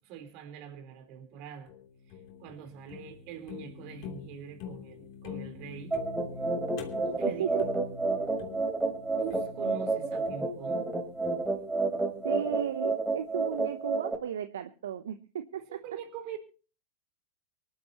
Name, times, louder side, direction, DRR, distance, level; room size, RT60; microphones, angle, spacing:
voice 1, 0.1-1.7 2.1-6.0 7.1-7.4 9.2-10.9 15.7-16.4, right 7 dB, 50° right, 7 dB, 4.1 m, -43 dB
sound 1, 1.7-12.9, left 7 dB, 55° left, 3.1 m, -45 dB
sound 2, 5.9-14.1, right 3 dB, 10° right, 3.8 m, -30 dB
voice 2, 7.3-7.6 12.2-15.8, right 9 dB, 75° right, 10 dB, 0.9 m, -35 dB
24.5 x 11.5 x 3.0 m, 0.38 s
hypercardioid pair, 95°, 0 cm